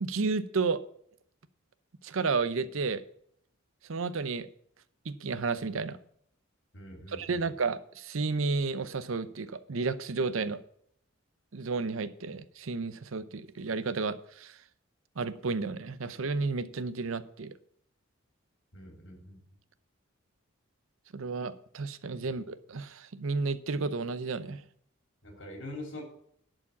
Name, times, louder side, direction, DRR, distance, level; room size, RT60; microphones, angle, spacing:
voice 1, 0.0-0.8 2.0-3.0 3.9-4.5 5.1-6.0 7.1-10.6 11.5-14.6 15.2-17.5 21.1-24.6, right 4 dB, 75° right, 14 dB, 0.7 m, -32 dB
voice 2, 6.7-7.5 18.7-19.4 25.2-26.0, left 1 dB, 60° left, 2 dB, 3.2 m, -43 dB
11.0 x 5.0 x 8.4 m, 0.66 s
head